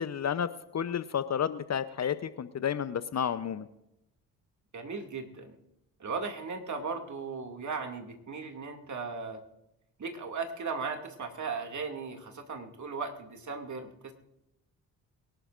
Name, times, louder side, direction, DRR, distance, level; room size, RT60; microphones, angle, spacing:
voice 1, 0.0-3.7, left 8 dB, 40° left, 14 dB, 0.8 m, -31 dB
voice 2, 4.7-5.6 6.0-9.4 10.0-14.1, right 4 dB, 45° right, 4 dB, 2.4 m, -37 dB
23.0 x 11.5 x 2.6 m, 0.85 s
hypercardioid pair, 45°, 42 cm